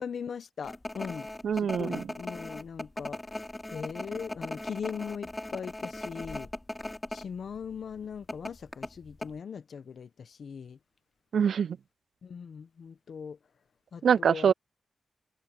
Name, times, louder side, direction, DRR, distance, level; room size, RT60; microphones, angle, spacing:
voice 1, 0.0-1.3 1.5-3.2 3.7-6.5 7.1-10.8 12.2-13.4 13.9-14.5, left 6 dB, 70° left, 1.2 m, -40 dB
sound 1, 0.6-7.3 7.5-7.7 8.3-9.3, left 1 dB, 15° left, 5.2 m, -38 dB
voice 2, 1.4-2.0 11.3-11.8 14.0-14.5, right 7 dB, 75° right, 0.3 m, -24 dB
cardioid pair, 65°, 0 cm